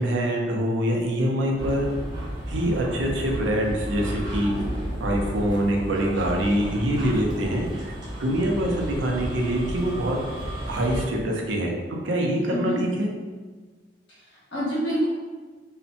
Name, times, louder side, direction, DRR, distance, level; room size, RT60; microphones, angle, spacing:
voice 1, 0.0-1.9 2.5-4.6 5.0-10.2 10.6-13.1, right 1 dB, 85° right, 0 dB, 0.5 m, -25 dB
sound 1, 1.6-11.0, equal, 25° right, 0.5 m, -33 dB
voice 2, 12.4-12.8 14.1-15.1, equal, 70° left, -8 dB, 1.2 m, -28 dB
2.7 x 2.1 x 2.5 m, 1.4 s
head